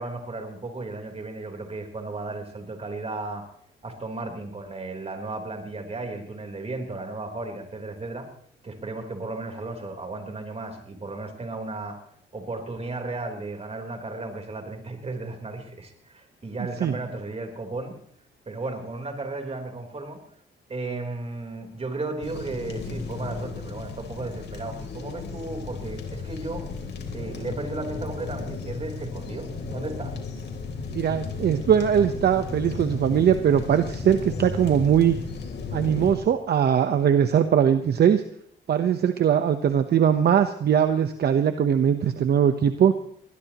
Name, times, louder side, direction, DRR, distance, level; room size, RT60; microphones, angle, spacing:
voice 1, 0.0-3.4 3.8-8.3 8.6-12.0 12.3-18.0 18.5-20.2 20.7-26.6 27.1-30.2, right 2 dB, 30° right, 4 dB, 3.9 m, -34 dB
sound 1, 22.2-36.1, left 4 dB, 60° left, 3.4 m, -34 dB
voice 2, 30.9-35.2 35.7-38.2 38.7-43.0, right 8 dB, 55° right, 9 dB, 1.0 m, -21 dB
20.5 x 20.0 x 3.0 m, 0.64 s
cardioid pair, 90°, 20 cm